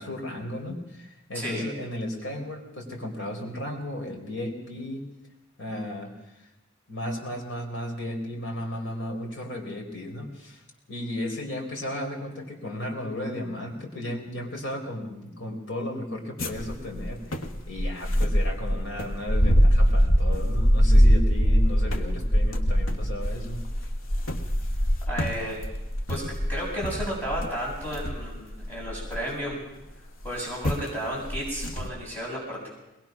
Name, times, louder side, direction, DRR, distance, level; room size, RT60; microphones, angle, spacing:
voice 1, 0.0-5.0 5.6-6.1 6.9-10.6 10.9-23.6, left 1 dB, 65° left, 1 dB, 4.5 m, -34 dB
sound 1, 16.4-29.5 30.2-30.4 30.6-30.9 31.2-31.9, equal, 85° left, 1.5 m, -23 dB
voice 2, 25.1-25.6 26.1-26.2 26.5-29.6 30.2-32.7, equal, 10° left, -5 dB, 7.6 m, -32 dB
21.5 x 21.0 x 6.2 m, 0.94 s
head